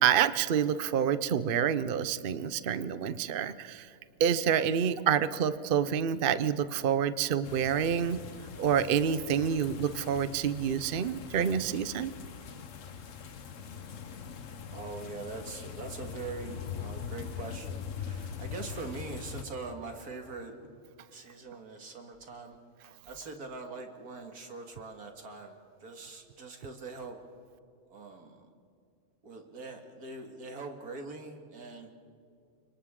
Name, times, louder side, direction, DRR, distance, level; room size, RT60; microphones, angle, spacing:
voice 1, 0.0-3.9 4.2-8.2 8.6-12.1, right 8 dB, 50° right, 13 dB, 0.6 m, -28 dB
sound 1, 7.4-19.5, left 7 dB, 60° left, 1.3 m, -42 dB
voice 2, 14.7-20.5 21.1-22.6 23.1-27.2 27.9-28.5 29.2-31.9, right 3 dB, 75° right, 4 dB, 2.5 m, -42 dB
30.0 x 25.5 x 3.7 m, 2.3 s
omnidirectional pair, 1.6 m